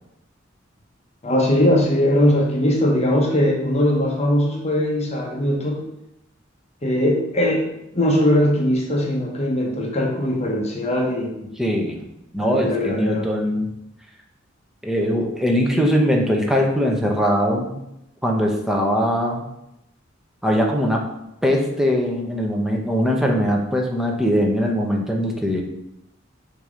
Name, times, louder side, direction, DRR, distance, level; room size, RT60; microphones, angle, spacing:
voice 1, 1.2-5.8 6.8-7.7 7.9-11.3 12.4-13.3, left 1 dB, 35° left, 0 dB, 0.9 m, -20 dB
voice 2, 11.6-12.1 12.3-13.7 14.8-17.8 18.2-19.5 20.4-21.0 21.4-25.6, equal, ahead, 0 dB, 0.8 m, -21 dB
6.7 x 2.9 x 5.0 m, 0.84 s
head